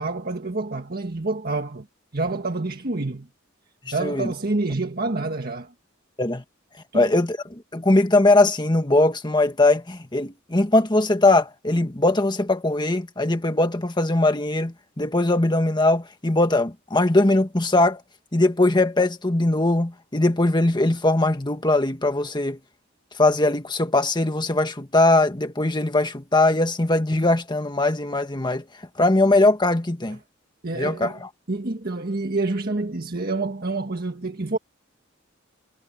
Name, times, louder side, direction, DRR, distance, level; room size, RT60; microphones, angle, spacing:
voice 1, 0.0-1.9 2.1-3.3 3.9-5.7 6.9-7.1 30.6-31.2 31.5-34.6, right 2 dB, 50° right, 1.6 m, -27 dB
voice 2, 4.0-4.3 6.2-6.4 6.9-7.4 7.7-18.0 18.3-22.6 23.2-28.6 29.0-30.2 30.7-31.1, left 2 dB, 20° left, 1.6 m, -20 dB
head